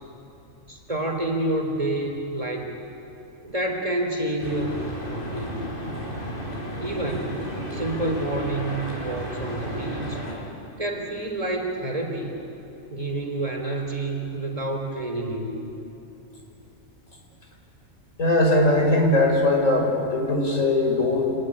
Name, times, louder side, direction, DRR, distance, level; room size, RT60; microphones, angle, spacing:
voice 1, 0.7-2.7 3.4-5.7 6.8-10.2 10.8-12.3 12.9-15.5, right 1 dB, 25° right, 2 dB, 3.5 m, -28 dB
sound 1, 4.4-10.3, equal, 40° left, 5.2 m, -33 dB
voice 2, 18.2-21.3, left 2 dB, 75° left, 2 dB, 4.6 m, -20 dB
27.0 x 20.0 x 10.0 m, 2.8 s
omnidirectional pair, 1.4 m